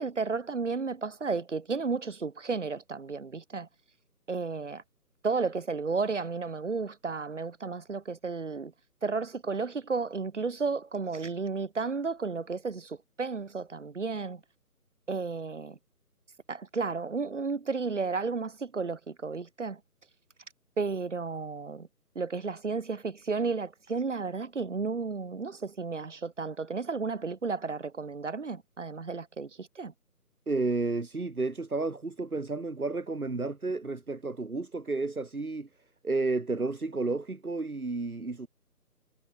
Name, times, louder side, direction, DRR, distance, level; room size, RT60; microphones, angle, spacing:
voice 1, 0.0-3.7 4.3-4.8 5.2-8.7 9.0-14.4 15.1-15.8 16.5-19.8 20.8-21.9 22.1-29.9, right 4 dB, 50° right, 7.0 m, -33 dB
voice 2, 30.5-35.7 36.0-38.5, right 3 dB, 65° right, 7.5 m, -31 dB
figure-of-eight pair, 160°, 47 cm